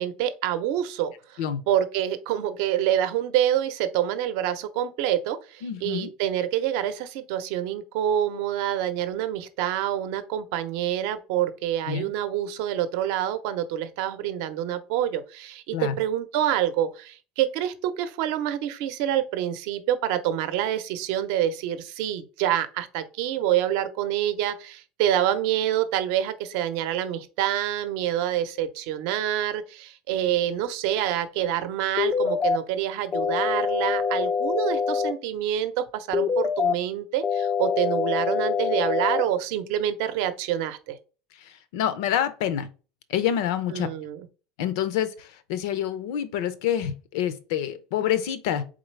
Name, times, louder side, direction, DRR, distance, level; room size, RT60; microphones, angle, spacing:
voice 1, 0.0-1.4 1.7-41.0 43.7-44.3, right 11 dB, 65° right, 0.6 m, -27 dB
voice 2, 5.6-6.1 11.9-12.1 15.7-15.9 41.4-42.7 43.1-43.9 44.6-48.6, left 10 dB, 80° left, 0.6 m, -27 dB
sound 1, 32.0-32.6 33.1-35.1 36.1-36.7 37.2-39.2, left 6 dB, 20° left, 0.3 m, -25 dB
4.0 x 3.7 x 3.2 m
cardioid pair, 160°, 2 cm